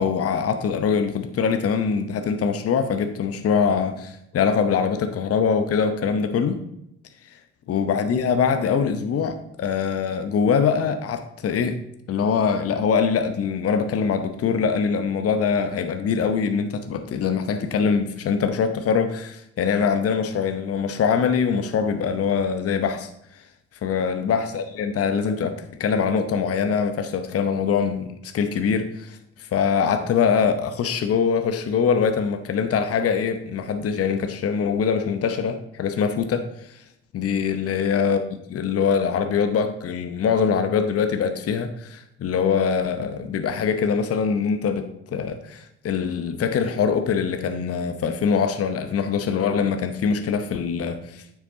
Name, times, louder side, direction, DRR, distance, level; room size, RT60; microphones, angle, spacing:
voice 1, 0.0-6.6 7.7-11.8 12.1-23.1 23.8-36.8 37.1-51.2, left 6 dB, 40° left, 7 dB, 0.9 m, -23 dB
9.5 x 7.1 x 2.8 m, 0.79 s
hypercardioid pair, 50°, 35 cm